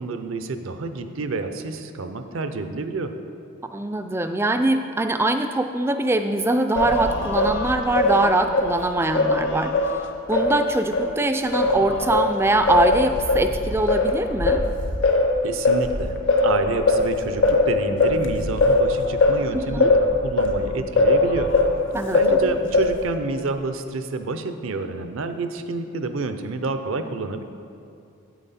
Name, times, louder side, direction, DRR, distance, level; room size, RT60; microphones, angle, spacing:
voice 1, 0.0-3.1 15.4-16.1 16.4-21.5 22.1-27.4, right 3 dB, 60° right, 9 dB, 0.5 m, -29 dB
voice 2, 3.7-10.0 10.3-14.6 19.5-19.9 21.9-22.5, right 2 dB, 10° right, 7 dB, 0.3 m, -23 dB
Singing, 6.8-11.1 11.5-21.8 22.1-23.2, left 2 dB, 55° left, 0.8 m, -21 dB
9.0 x 8.3 x 4.2 m, 2.5 s
head